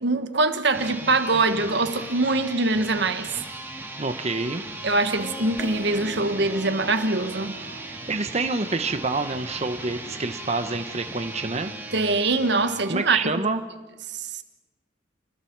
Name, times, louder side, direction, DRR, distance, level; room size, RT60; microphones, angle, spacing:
voice 1, 0.0-3.3 4.8-7.6 11.9-13.3 14.1-14.3, right 3 dB, 60° right, 1.4 m, -23 dB
sound 1, 0.6-13.4, right 2 dB, 10° right, 2.2 m, -38 dB
voice 2, 4.0-4.6 8.1-11.7 12.9-13.6, right 3 dB, 35° right, 0.9 m, -27 dB
sound 2, 5.2-10.5, right 1 dB, 20° left, 2.0 m, -43 dB
29.0 x 20.5 x 4.6 m
head